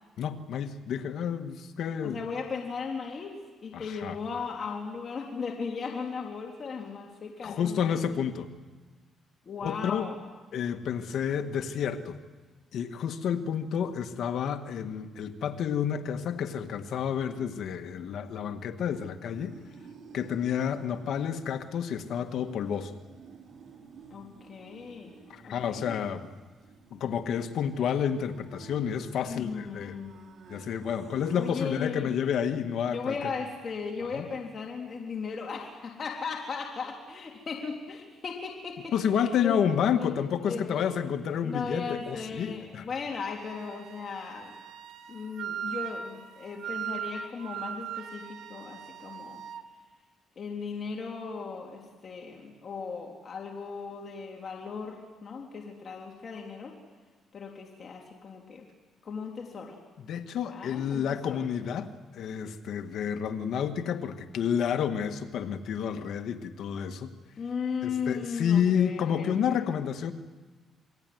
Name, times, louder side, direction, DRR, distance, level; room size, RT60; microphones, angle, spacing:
voice 1, 0.2-2.2 3.7-4.2 7.4-8.5 9.6-10.1 10.5-12.2 12.7-19.6 20.1-23.0 25.3-26.3 26.9-30.0 30.5-33.2 34.1-34.3 38.9-42.8 60.1-67.1 67.8-70.1, left 8 dB, 70° left, 7 dB, 1.8 m, -30 dB
voice 2, 2.0-8.0 9.4-10.2 24.1-25.1 25.4-26.0 29.3-30.2 31.3-32.1 32.9-39.6 40.0-40.9 41.4-44.6 45.1-49.4 50.4-56.8 57.3-58.7 59.0-59.8 60.5-61.5 67.4-69.6, left 5 dB, 45° left, 1 dB, 3.4 m, -37 dB
sound 1, 19.2-31.5, right 6 dB, 60° right, 3.5 m, -51 dB
Wind instrument woodwind instrument, 43.3-49.7, right 9 dB, 75° right, 1.8 m, -39 dB
28.0 x 21.5 x 9.4 m, 1.3 s
cardioid pair, 90°, 0 cm